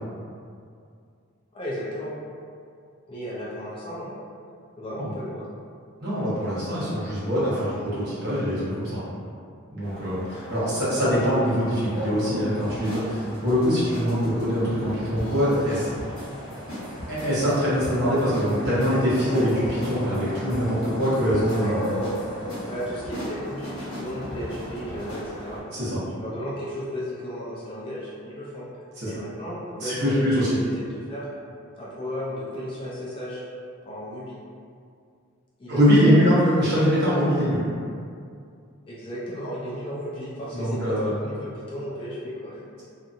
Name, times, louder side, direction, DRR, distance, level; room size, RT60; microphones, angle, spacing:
voice 1, 1.5-2.2 3.1-4.1 4.8-5.5 10.5-11.0 21.3-22.1 22.7-25.6 26.2-28.7 29.0-30.6 30.9-31.3 31.8-33.4 33.8-34.4 35.6-36.2 38.9-42.7, equal, 25° left, -8 dB, 0.4 m, -34 dB
voice 2, 6.0-9.0 9.7-15.9 17.1-21.8 25.7-26.0 29.0-29.1 29.8-30.5 35.7-37.6 40.5-41.1, equal, 50° right, -10 dB, 1.0 m, -23 dB
sound 1, 9.8-25.6, equal, 80° right, 1.1 m, -37 dB
sound 2, 12.6-25.3, equal, 80° left, 0.8 m, -38 dB
2.7 x 2.5 x 2.4 m, 2.3 s
head